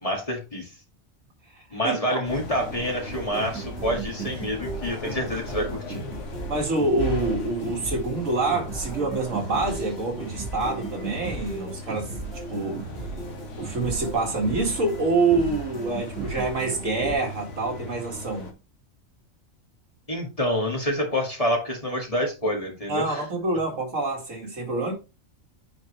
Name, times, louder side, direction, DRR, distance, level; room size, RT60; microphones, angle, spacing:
voice 1, 0.0-0.7 1.7-6.0 20.1-23.2, equal, 25° left, 2.1 m, -27 dB
voice 2, 1.8-2.2 6.5-12.1 12.5-12.9 13.6-18.5 22.9-24.9, right 3 dB, 75° right, 2.3 m, -26 dB
sound 1, 2.2-18.5, left 2 dB, 65° left, 1.5 m, -38 dB
sound 2, 3.1-17.2, right 4 dB, 55° right, 2.3 m, -36 dB
9.5 x 4.4 x 3.1 m
omnidirectional pair, 1.4 m